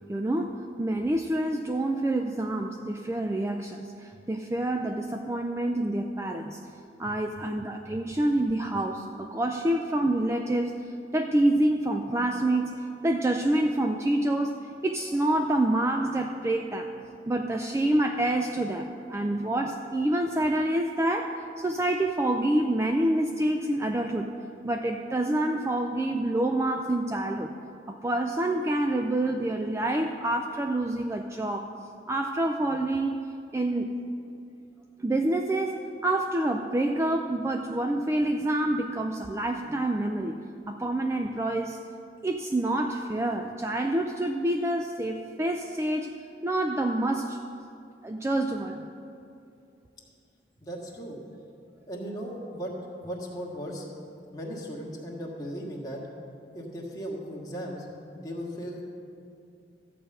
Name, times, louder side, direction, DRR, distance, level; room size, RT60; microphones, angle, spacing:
voice 1, 0.1-6.6 7.0-10.8 11.1-16.9 17.3-24.3 24.6-27.5 27.9-31.7 32.1-33.1 33.5-34.0 35.0-40.4 40.7-41.8 42.2-46.1 46.4-47.4 48.0-48.9, right 1 dB, 15° right, 4 dB, 0.4 m, -27 dB
voice 2, 50.6-51.2 51.9-52.7 53.0-53.9 54.3-56.0 56.5-57.9 58.1-58.8, equal, 20° left, -3 dB, 1.6 m, -37 dB
13.5 x 5.0 x 7.9 m, 2.6 s
head